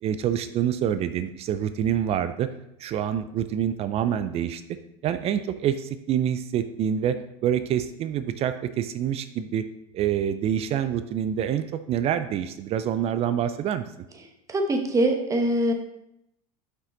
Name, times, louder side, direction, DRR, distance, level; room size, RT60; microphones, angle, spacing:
voice 1, 0.0-2.5 2.8-4.8 5.0-9.6 9.9-13.8, right 9 dB, 35° right, 11 dB, 0.4 m, -26 dB
voice 2, 14.5-15.7, right 1 dB, 15° right, 4 dB, 1.0 m, -23 dB
5.8 x 5.5 x 3.9 m, 0.81 s
hypercardioid pair, 105°, 18 cm